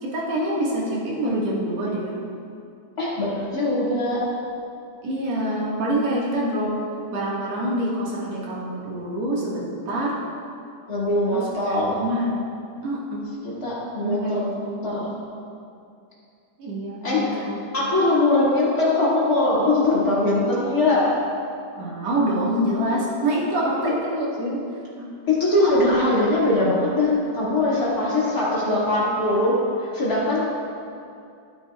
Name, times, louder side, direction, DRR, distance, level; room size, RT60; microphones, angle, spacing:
voice 1, 0.0-2.1 5.0-6.8 7.1-10.2 11.3-12.4 12.8-13.2 14.0-14.4 14.7-15.0 16.6-17.6 21.8-24.6 25.0-25.1, right 1 dB, 55° right, -5 dB, 2.0 m, -26 dB
voice 2, 3.0-4.3 10.9-12.0 13.6-14.6 14.8-15.1 17.0-17.5 17.7-21.1 23.6-23.9 25.3-30.4, left 2 dB, 45° left, -9 dB, 1.1 m, -21 dB
16.5 x 9.5 x 2.4 m, 2.5 s
omnidirectional pair, 5.4 m